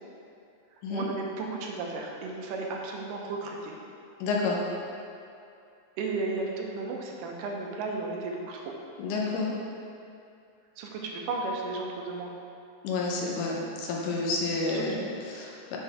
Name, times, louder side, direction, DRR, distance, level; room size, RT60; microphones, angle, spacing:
voice 1, 0.9-3.7 6.0-8.7 10.8-12.3 13.9-14.1 14.7-15.1, right 3 dB, 85° right, 0 dB, 2.2 m, -34 dB
voice 2, 4.2-4.6 9.0-9.5 12.8-15.8, left 3 dB, 80° left, -2 dB, 2.3 m, -30 dB
7.1 x 4.3 x 3.4 m, 2.5 s
omnidirectional pair, 3.8 m